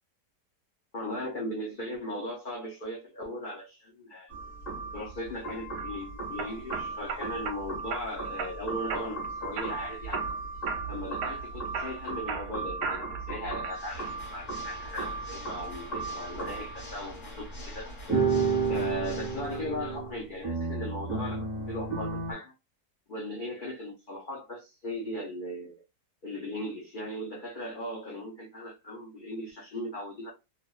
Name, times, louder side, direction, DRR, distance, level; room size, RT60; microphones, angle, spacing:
voice 1, 0.9-4.3 4.9-10.4 10.9-18.3 18.7-22.5 23.1-25.8 26.2-30.3, left 1 dB, 85° left, 0.4 m, -38 dB
sound 1, 4.3-17.0 17.7-17.8 18.1-22.3, right 4 dB, 25° left, 1.3 m, -34 dB
sound 2, 5.5-5.9 6.4-7.6 7.9-8.5 8.9-9.3 9.6-10.4 10.7-10.9 11.2-13.2 13.6-14.2, right 5 dB, 90° right, 1.2 m, -36 dB
Water / Mechanisms, 13.7-19.7, left 1 dB, 45° left, 1.4 m, -46 dB
3.2 x 2.2 x 2.3 m
omnidirectional pair, 1.8 m